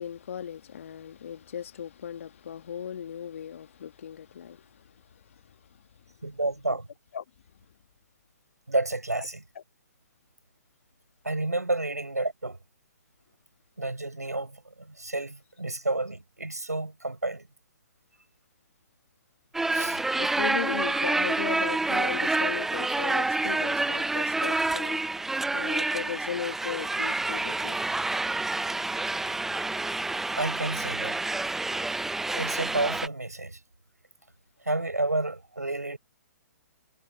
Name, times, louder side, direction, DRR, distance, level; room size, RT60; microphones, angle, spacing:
voice 1, 0.0-5.4 5.7-5.8 7.1-7.3 20.2-25.0 25.5-27.8, left 8 dB, 55° left, 2.0 m, -37 dB
voice 2, 6.2-6.9 8.7-9.4 11.2-12.6 13.8-17.5 19.7-20.0 30.4-31.2 32.3-33.6 34.6-36.0, right 2 dB, 80° right, 6.2 m, -30 dB
sound 1, 19.5-33.1, right 2 dB, 5° right, 0.6 m, -28 dB
figure-of-eight pair, 120°, 9 cm